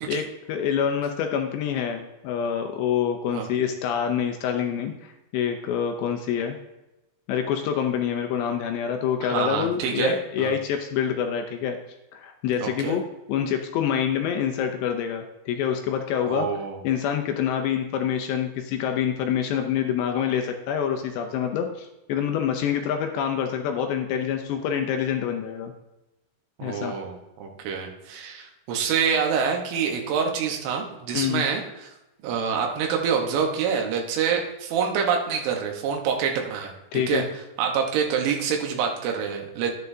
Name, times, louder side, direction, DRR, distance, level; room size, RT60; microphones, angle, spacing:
voice 1, 0.1-6.6 7.3-11.8 12.1-13.0 13.3-16.5 16.8-25.7 26.6-27.0 31.1-31.5 36.9-37.3, left 8 dB, 80° left, 4 dB, 2.7 m, -26 dB
voice 2, 9.2-10.5 12.6-13.0 16.3-16.8 26.6-31.9 32.2-37.2 37.6-39.7, right 6 dB, 85° right, 1 dB, 3.6 m, -26 dB
11.5 x 10.5 x 2.7 m, 0.97 s
omnidirectional pair, 5.4 m